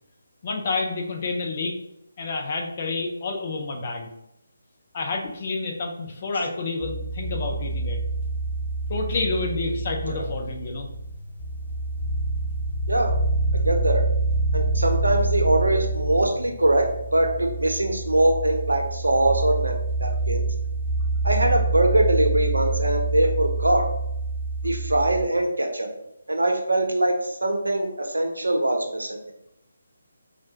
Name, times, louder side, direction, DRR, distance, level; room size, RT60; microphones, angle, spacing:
voice 1, 0.4-1.8 2.2-4.1 4.9-8.0 8.9-10.9, left 3 dB, 35° left, 2 dB, 0.7 m, -29 dB
sound 1, 6.8-25.2, right 2 dB, 10° left, 1.1 m, -27 dB
voice 2, 13.6-14.0 14.5-16.8 17.1-19.7 20.0-20.4 21.2-23.8 24.6-25.9 26.3-29.2, right 1 dB, 75° right, 2 dB, 0.7 m, -22 dB
4.5 x 2.5 x 2.8 m, 0.82 s
figure-of-eight pair, 150°, 0 cm